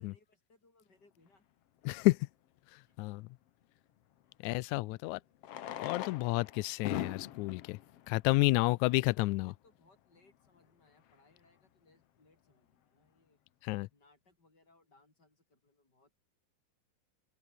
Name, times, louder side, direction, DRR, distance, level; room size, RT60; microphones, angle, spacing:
voice 1, 0.0-1.5 2.8-3.0 4.7-5.3 9.0-13.4 13.9-16.2, left 2 dB, 30° left, 7.0 m, -68 dB
voice 2, 1.8-2.2 3.0-3.3 4.4-5.2 5.8-7.8 8.1-9.5 13.6-13.9, left 21 dB, 90° left, 1.7 m, -30 dB
Fireworks, 1.8-1.9 4.2-4.3 5.4-9.1 9.9-10.0 10.2-10.3 10.5-10.6 11.1-11.3, left 11 dB, 60° left, 1.7 m, -42 dB
omnidirectional pair, 3.9 m